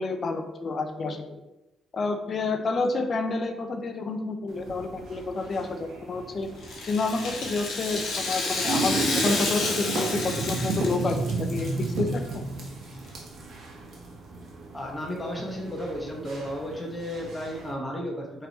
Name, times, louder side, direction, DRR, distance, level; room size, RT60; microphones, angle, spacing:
voice 1, 0.0-1.4 1.9-6.5 6.8-11.7 12.0-12.5, left 3 dB, 45° left, 6 dB, 0.5 m, -29 dB
sound 1, 4.5-17.7, right 3 dB, 65° right, 1.1 m, -34 dB
Rattle (instrument), 6.6-11.8 12.2-12.3 13.1-13.2, left 3 dB, 75° left, 1.0 m, -30 dB
voice 2, 14.7-18.5, equal, 15° left, -1 dB, 1.2 m, -33 dB
4.6 x 3.4 x 3.0 m, 0.98 s
cardioid pair, 90°, 0 cm